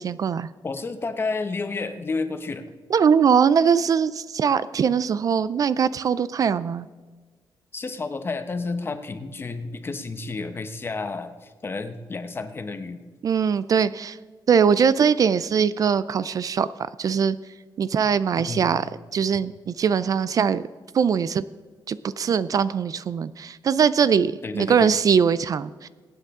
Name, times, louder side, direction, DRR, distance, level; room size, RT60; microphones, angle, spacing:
voice 1, 0.0-0.5 2.9-6.9 13.2-14.2 14.5-17.4 17.8-18.8 19.1-20.6 20.9-21.4 21.9-25.9, right 7 dB, 50° right, 16 dB, 0.4 m, -21 dB
voice 2, 0.6-2.6 7.7-13.0 18.4-18.7 24.4-24.9, left 3 dB, 30° left, 9 dB, 0.9 m, -31 dB
23.5 x 9.1 x 3.7 m, 1.4 s
wide cardioid pair, 145°, 8 cm